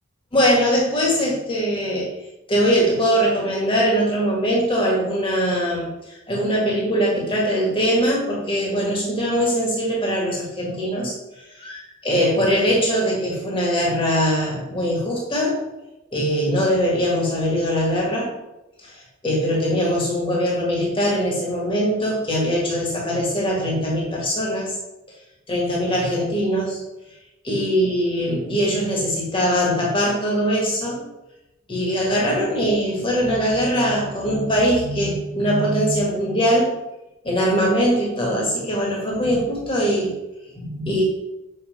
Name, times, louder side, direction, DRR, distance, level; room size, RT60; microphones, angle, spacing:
voice 1, 0.3-2.1 2.5-15.6 16.1-18.3 18.8-24.8 25.5-26.8 27.4-31.0 31.7-36.7 37.2-40.1 40.5-41.0, equal, 25° left, -3 dB, 1.7 m, -21 dB
6.6 x 5.6 x 5.4 m, 0.97 s
head